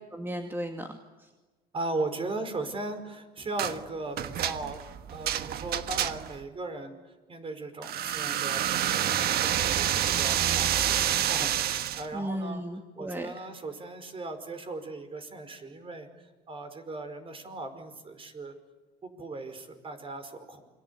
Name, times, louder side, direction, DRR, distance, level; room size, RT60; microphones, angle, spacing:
voice 1, 0.1-1.3 12.1-13.5, right 1 dB, 15° right, 4 dB, 2.3 m, -35 dB
voice 2, 1.7-4.8 5.1-7.0 7.3-12.6 13.0-18.6 19.0-20.6, right 2 dB, 35° right, 8 dB, 5.2 m, -38 dB
sound 1, 3.6-3.8 4.2-6.4 7.8-12.1, right 11 dB, 65° right, 1.4 m, -28 dB
28.5 x 24.0 x 8.5 m, 1.2 s
cardioid pair, 110°, 17 cm